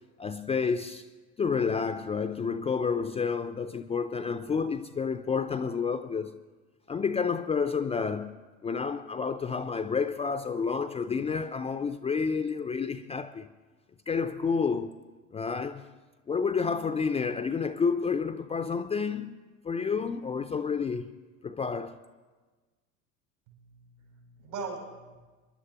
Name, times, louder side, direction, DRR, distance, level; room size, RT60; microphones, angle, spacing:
voice 1, 0.2-1.0 1.4-6.4 6.9-13.5 14.1-14.9 15.3-15.9 16.3-21.1 21.4-22.0, left 5 dB, 15° left, 0.4 m, -30 dB
voice 2, 23.5-25.2, right 4 dB, 75° right, 5.2 m, -41 dB
29.0 x 11.0 x 2.9 m
hypercardioid pair, 75°, 40 cm